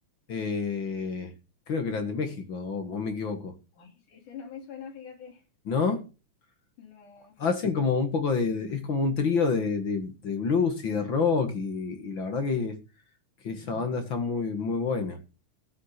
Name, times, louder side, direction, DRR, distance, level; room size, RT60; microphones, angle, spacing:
voice 1, 0.3-1.3 1.7-3.6 5.7-6.0 7.4-12.8 13.4-15.2, left 5 dB, 45° left, 2.0 m, -28 dB
voice 2, 3.8-5.4 6.8-7.4, left 7 dB, 75° left, 4.2 m, -44 dB
13.5 x 9.7 x 5.8 m
omnidirectional pair, 3.6 m